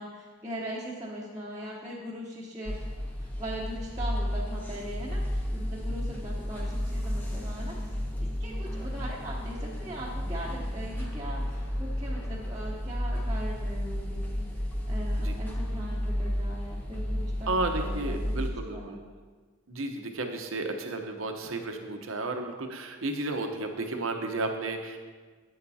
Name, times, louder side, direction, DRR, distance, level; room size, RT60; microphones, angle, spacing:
voice 1, 0.0-2.8 3.2-7.8 8.2-14.5 14.8-18.4 18.7-19.0, equal, 15° right, -7 dB, 0.9 m, -40 dB
sound 1, 2.7-18.5, equal, 10° left, 0.8 m, -32 dB
voice 2, 17.5-19.0 19.7-25.0, right 2 dB, 75° right, 4 dB, 0.9 m, -33 dB
11.5 x 8.8 x 2.8 m, 1.4 s
head